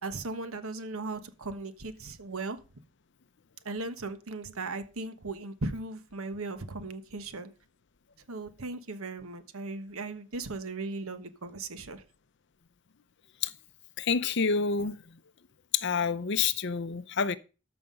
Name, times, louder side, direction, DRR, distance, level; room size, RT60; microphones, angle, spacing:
voice 1, 0.0-2.6 3.6-7.5 8.3-12.0, right 3 dB, 75° right, 1.2 m, -37 dB
voice 2, 14.0-15.2 15.7-17.4, left 5 dB, 55° left, 0.6 m, -28 dB
13.0 x 5.8 x 5.4 m
head